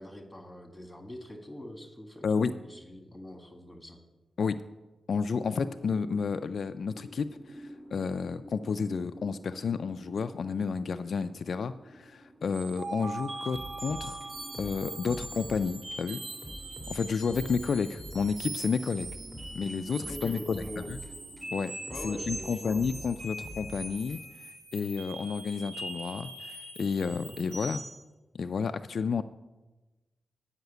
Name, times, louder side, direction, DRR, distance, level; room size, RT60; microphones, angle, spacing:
voice 1, 0.0-4.0 20.1-20.9 21.9-22.8, left 1 dB, 10° left, 4 dB, 1.6 m, -43 dB
voice 2, 2.2-2.5 4.4-4.6 5.1-14.2 14.6-16.2 16.9-19.1 19.5-21.0 21.5-21.7 22.0-24.2 24.7-27.8 28.3-29.2, left 5 dB, 65° left, 10 dB, 0.3 m, -31 dB
sound 1, 5.4-22.3, right 1 dB, 45° right, 3.1 m, -52 dB
sound 2, 12.5-28.0, right 2 dB, 85° right, 3.1 m, -42 dB
sound 3, 13.5-15.7 15.9-16.1 16.4-18.4 18.6-21.5 21.9-24.4, equal, 15° right, 2.0 m, -46 dB
9.3 x 5.7 x 8.0 m, 1.1 s
wide cardioid pair, 120°, 0 cm